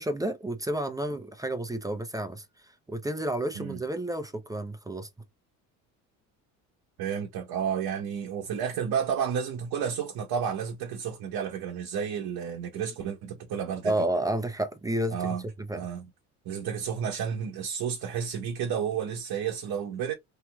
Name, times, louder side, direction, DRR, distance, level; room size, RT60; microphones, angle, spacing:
voice 1, 0.0-5.1 13.8-15.3 15.7-15.8, right 1 dB, 10° right, 0.6 m, -31 dB
voice 2, 7.0-13.9 15.1-15.4 15.7-16.1 16.4-20.1, right 7 dB, 55° right, 0.9 m, -31 dB
3.2 x 2.9 x 2.2 m
supercardioid pair, 80°, 42 cm